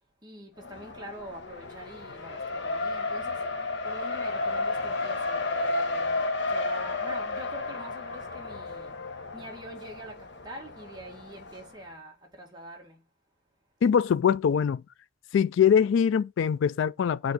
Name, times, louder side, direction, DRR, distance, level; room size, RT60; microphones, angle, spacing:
voice 1, 0.2-9.1 9.3-13.1, right 1 dB, 25° right, 2.0 m, -45 dB
Race car auto racing, 0.6-11.6, left 3 dB, 65° left, 1.1 m, -32 dB
voice 2, 13.8-14.8 15.3-17.3, left 7 dB, 90° left, 0.3 m, -23 dB
8.0 x 3.8 x 4.2 m
head